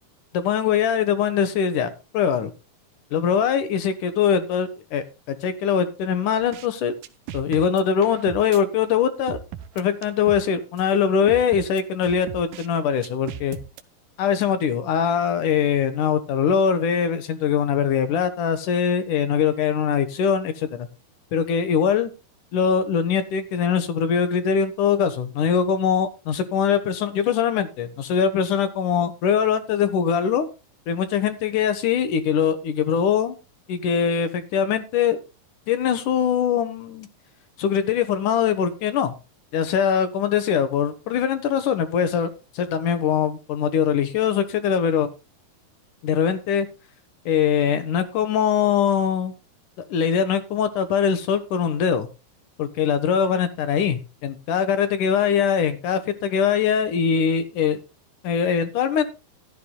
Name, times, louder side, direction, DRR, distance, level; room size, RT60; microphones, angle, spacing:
voice 1, 0.3-2.5 3.1-6.9 7.3-9.4 9.8-13.6 14.2-20.9 21.3-22.1 22.5-30.5 30.9-33.4 33.7-35.2 35.7-37.1 37.6-39.1 39.5-45.1 46.0-46.7 47.3-49.3 49.9-52.1 52.6-57.8 58.2-59.0, left 7 dB, 65° left, 11 dB, 2.5 m, -22 dB
sound 1, 6.4-6.7 7.0-8.6 9.3-10.5 10.8-10.9 11.3-12.7 13.0-13.8, right 11 dB, 70° right, 2.3 m, -37 dB
14.5 x 13.0 x 2.3 m, 0.30 s
omnidirectional pair, 4.5 m